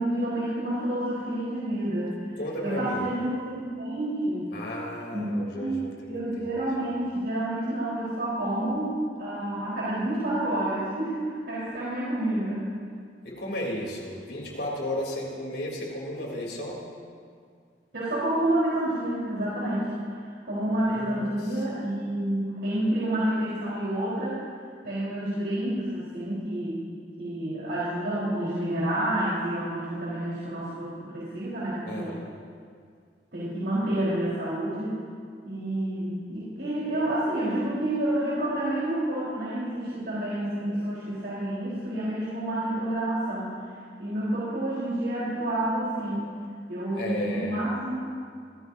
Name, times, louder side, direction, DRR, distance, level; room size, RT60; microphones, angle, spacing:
voice 1, 0.0-2.1 2.6-4.5 5.1-12.7 17.9-24.4 24.8-26.8 27.2-32.1 33.3-35.0 35.4-43.5 44.0-46.3 46.7-48.0, right 1 dB, 85° right, -9 dB, 4.2 m, -29 dB
voice 2, 2.4-3.1 4.5-6.6 13.2-16.8 20.8-21.6 31.8-32.3 46.9-47.6, left 1 dB, 80° left, -3 dB, 3.5 m, -34 dB
25.0 x 15.5 x 2.8 m, 2.1 s
head